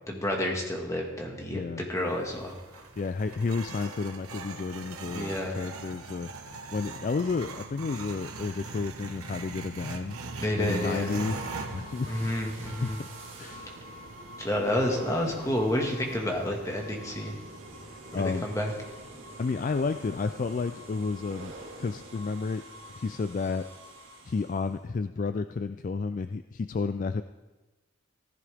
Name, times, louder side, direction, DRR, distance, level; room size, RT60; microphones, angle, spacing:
voice 1, 0.1-2.9 5.1-5.6 10.4-11.1 12.1-13.0 14.4-17.4 18.2-18.7, left 1 dB, 15° left, 1 dB, 1.7 m, -30 dB
voice 2, 1.5-1.8 3.0-6.3 6.7-10.2 10.6-13.1 13.4-13.7 18.1-18.5 19.4-23.7 24.3-27.2, left 4 dB, 40° left, 10 dB, 0.3 m, -31 dB
sound 1, 2.0-16.8, right 3 dB, 90° right, 1.2 m, -42 dB
sound 2, 10.0-24.8, right 1 dB, 70° right, 2.5 m, -45 dB
15.5 x 14.5 x 3.5 m, 1.2 s
head